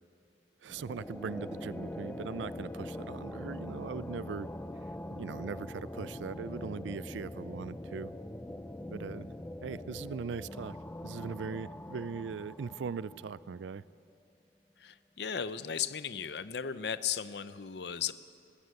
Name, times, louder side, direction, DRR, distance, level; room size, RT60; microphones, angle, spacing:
voice 1, 0.6-4.5 5.1-8.1 8.9-9.3 9.6-10.8 11.0-13.8, right 6 dB, 90° right, 18 dB, 0.4 m, -40 dB
sound 1, 0.7-13.8, left 1 dB, 10° left, 0.5 m, -43 dB
voice 2, 14.8-18.1, left 8 dB, 65° left, 13 dB, 0.6 m, -36 dB
20.5 x 15.5 x 8.3 m, 2.6 s
head